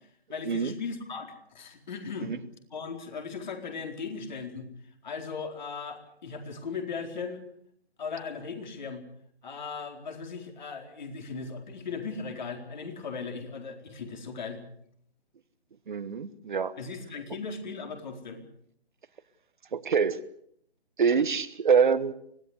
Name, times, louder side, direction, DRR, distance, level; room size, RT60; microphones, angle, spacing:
voice 1, 0.3-2.4 2.7-4.7 5.0-7.4 8.0-9.1 9.4-14.6 16.8-18.4, left 5 dB, 45° left, 5 dB, 4.4 m, -37 dB
voice 2, 15.9-16.7 19.7-20.2 21.0-22.1, right 6 dB, 50° right, 13 dB, 1.3 m, -25 dB
25.0 x 17.5 x 8.3 m, 0.68 s
figure-of-eight pair, 145°, 32 cm